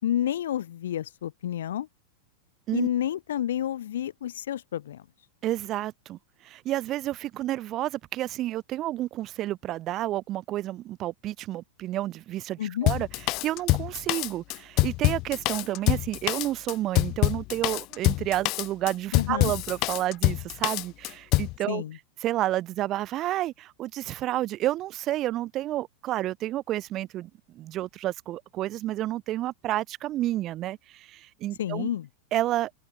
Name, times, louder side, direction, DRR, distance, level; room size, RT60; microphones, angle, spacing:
voice 1, 0.0-1.9 2.7-5.0 12.6-12.9 19.1-19.5 21.7-22.0 31.6-32.1, left 11 dB, 60° left, 2.6 m, -29 dB
voice 2, 5.4-21.8 22.2-31.9 32.3-32.7, right 14 dB, 35° right, 2.1 m, -30 dB
Drum kit, 12.9-21.6, left 22 dB, 40° left, 3.7 m, -25 dB
open air
figure-of-eight pair, 90°, 0 cm